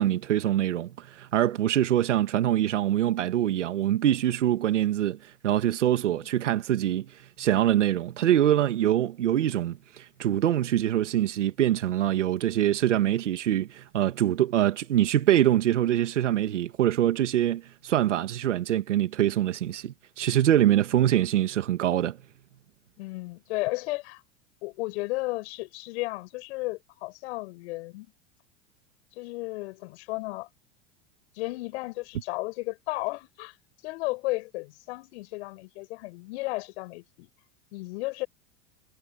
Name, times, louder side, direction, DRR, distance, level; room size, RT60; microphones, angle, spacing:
voice 1, 0.0-22.2, right 12 dB, 85° right, 1.7 m, -24 dB
voice 2, 23.0-24.2 24.6-28.1 29.2-30.5 31.3-33.6 33.8-37.3 37.7-38.3, left 23 dB, 65° left, 7.2 m, -34 dB
hypercardioid pair, 100°, 35 cm